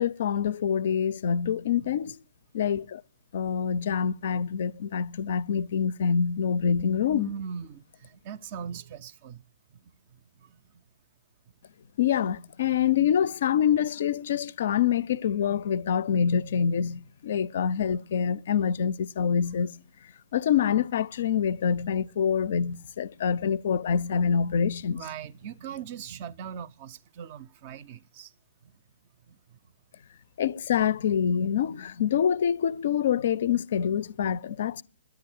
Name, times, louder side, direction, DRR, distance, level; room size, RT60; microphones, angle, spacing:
voice 1, 0.0-2.2 2.5-3.0 3.3-7.3 12.0-19.8 20.3-25.0 30.4-34.8, left 7 dB, 50° left, 0.5 m, -26 dB
voice 2, 7.1-9.4 9.7-10.8 22.7-22.8 24.9-28.3 29.3-29.6, right 7 dB, 35° right, 0.5 m, -40 dB
10.5 x 8.9 x 7.1 m
figure-of-eight pair, 125°, 0 cm